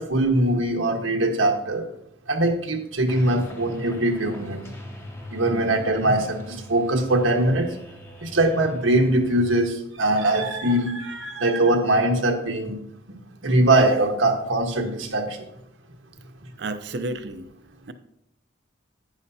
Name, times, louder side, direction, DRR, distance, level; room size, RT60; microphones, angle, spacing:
voice 1, 0.0-1.8 2.3-4.6 5.3-7.7 8.2-12.8 13.1-15.4, right 1 dB, 85° right, 3 dB, 1.4 m, -22 dB
sound 1, 3.1-9.5, left 1 dB, 15° left, 0.8 m, -41 dB
voice 2, 5.5-5.9 16.6-17.5 17.8-17.9, right 2 dB, 60° right, 10 dB, 0.6 m, -32 dB
11.5 x 9.2 x 2.8 m, 0.80 s
head